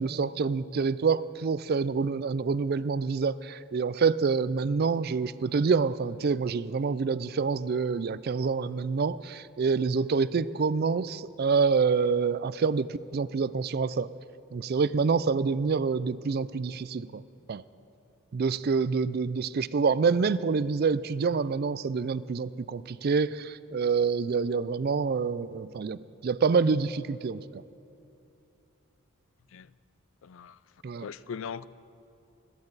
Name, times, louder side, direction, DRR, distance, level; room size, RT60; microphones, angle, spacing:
voice 1, 0.0-14.1 14.5-17.2 17.5-17.6 18.3-27.6 30.8-31.1, right 5 dB, 45° right, 0.4 m, -27 dB
voice 2, 30.2-30.6 31.0-31.7, left 6 dB, 65° left, 0.4 m, -39 dB
21.5 x 16.0 x 4.0 m
head